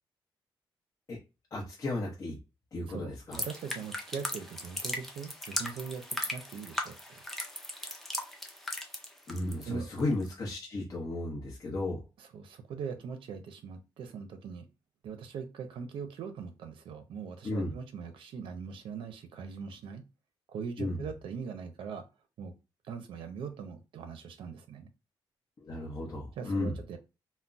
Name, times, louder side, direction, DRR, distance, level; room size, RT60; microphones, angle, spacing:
voice 1, 1.5-2.4 2.7-3.4 9.3-12.0 17.4-17.7 20.8-21.0 25.6-26.8, left 2 dB, 40° left, -3 dB, 0.7 m, -34 dB
voice 2, 2.9-7.2 9.7-9.9 12.2-14.7 15.0-20.0 20.5-22.0 22.4-22.5 22.9-24.9 26.4-27.0, right 6 dB, 80° right, 8 dB, 0.4 m, -41 dB
sound 1, 3.3-9.6 10.0-10.3, left 1 dB, 5° left, 0.5 m, -38 dB
2.2 x 2.0 x 3.8 m, 0.28 s
wide cardioid pair, 145°, 9 cm